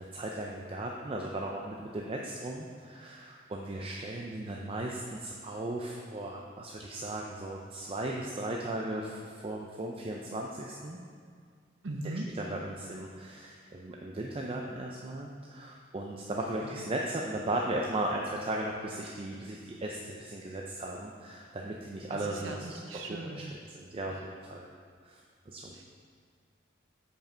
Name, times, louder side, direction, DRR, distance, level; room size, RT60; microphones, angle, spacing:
voice 1, 0.0-11.0 12.0-23.4 23.7-24.7 25.0-25.2 25.5-25.7, right 1 dB, 30° right, -1 dB, 0.5 m, -37 dB
voice 2, 11.8-12.3 16.6-16.7 22.1-23.5 25.7-25.9, right 2 dB, 70° right, 2 dB, 0.7 m, -39 dB
7.3 x 5.4 x 4.4 m, 2.1 s
head